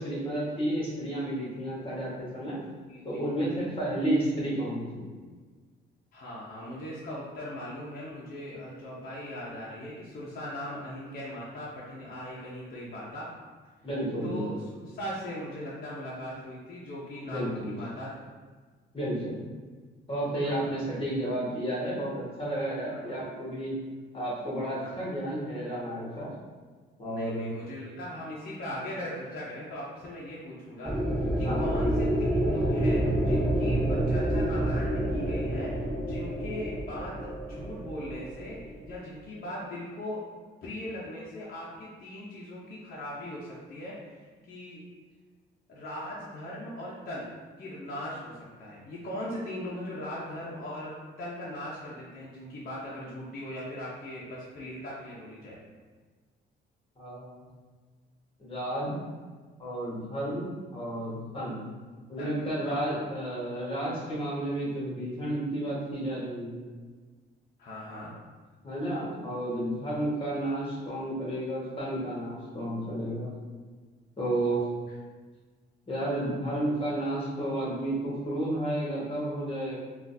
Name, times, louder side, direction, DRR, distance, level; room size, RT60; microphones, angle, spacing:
voice 1, 0.0-2.6 3.0-5.1 13.8-14.5 17.2-17.7 18.9-19.4 20.1-23.7 24.1-26.3 27.0-27.5 31.4-31.6 57.0-57.3 58.4-59.0 59.6-61.6 62.1-66.6 68.6-73.3 74.2-74.6 75.9-79.7, right 1 dB, 25° left, -6 dB, 1.5 m, -31 dB
voice 2, 2.9-3.5 6.1-13.3 14.2-18.2 20.4-20.7 21.0-21.1 22.9-23.2 24.7-25.0 27.1-30.9 31.4-40.2 40.6-44.9 45.7-47.3 47.6-55.6 62.2-62.3 62.6-62.8 67.6-68.1, left 1 dB, 50° left, -6 dB, 0.7 m, -39 dB
sound 1, 30.8-39.0, right 1 dB, ahead, 0.5 m, -28 dB
3.7 x 2.4 x 2.7 m, 1.4 s
cardioid pair, 90°, 20 cm